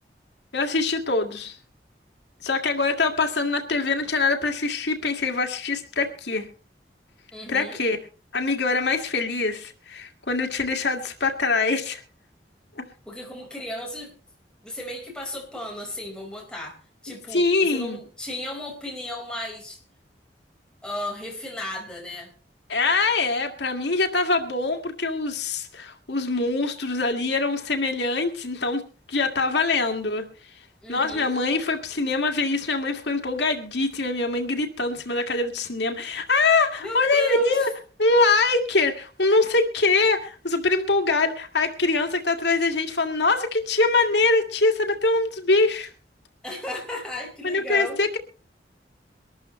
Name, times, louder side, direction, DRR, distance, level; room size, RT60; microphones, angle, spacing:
voice 1, 0.5-1.5 2.4-6.5 7.5-8.0 8.3-12.0 17.3-18.0 22.7-28.8 29.1-30.2 30.9-37.7 38.0-45.9 47.4-48.2, left 3 dB, 85° left, 5 dB, 2.1 m, -23 dB
voice 2, 7.3-7.8 13.0-14.1 14.6-16.8 17.0-19.8 20.8-22.3 30.8-31.3 36.8-37.7 46.4-48.0, left 1 dB, 5° left, 0 dB, 4.9 m, -35 dB
23.5 x 13.5 x 3.2 m, 0.37 s
head